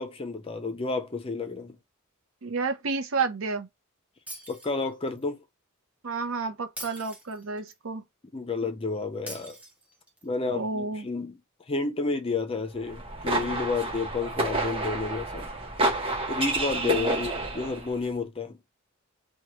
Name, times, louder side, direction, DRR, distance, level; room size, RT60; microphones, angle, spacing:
voice 1, 0.0-1.8 4.5-5.4 8.3-9.6 10.2-11.4 11.7-15.5 16.3-18.6, left 4 dB, 25° left, 0.5 m, -31 dB
voice 2, 2.4-3.7 6.0-8.0 10.5-11.1 16.8-17.2, right 4 dB, 65° right, 0.7 m, -31 dB
Shatter, 4.3-5.2 6.8-7.8 9.3-10.3, right 1 dB, 5° right, 0.8 m, -43 dB
sound 1, 12.8-17.9, right 2 dB, 25° right, 1.0 m, -29 dB
3.0 x 2.2 x 2.9 m
head